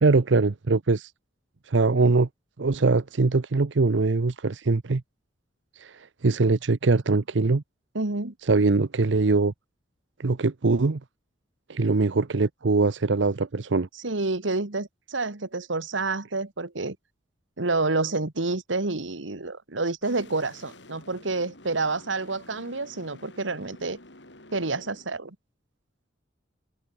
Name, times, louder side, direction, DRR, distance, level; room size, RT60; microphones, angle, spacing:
voice 1, 0.0-1.1 1.7-2.3 2.6-5.0 5.8-7.6 8.4-9.5 10.2-11.0 11.7-13.9, right 3 dB, 75° right, 0.7 m, -22 dB
voice 2, 7.9-8.3 14.0-17.0 17.6-24.0 24.5-25.4, right 3 dB, 90° right, 1.8 m, -28 dB
sound 1, 20.0-25.1, left 2 dB, 65° left, 6.7 m, -50 dB
head